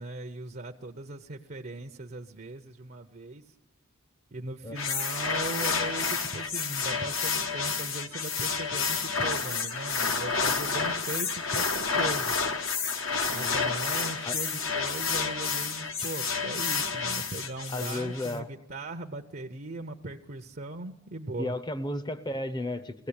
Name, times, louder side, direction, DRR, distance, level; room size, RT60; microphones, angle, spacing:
voice 1, 0.0-3.4 4.3-12.4 13.3-21.6, right 2 dB, 45° right, 5 dB, 0.7 m, -39 dB
sound 1, 4.7-18.3, left 5 dB, 65° left, 1.3 m, -30 dB
voice 2, 17.7-18.5 21.4-23.1, left 1 dB, 20° left, 13 dB, 0.8 m, -33 dB
21.5 x 17.0 x 8.7 m, 0.92 s
head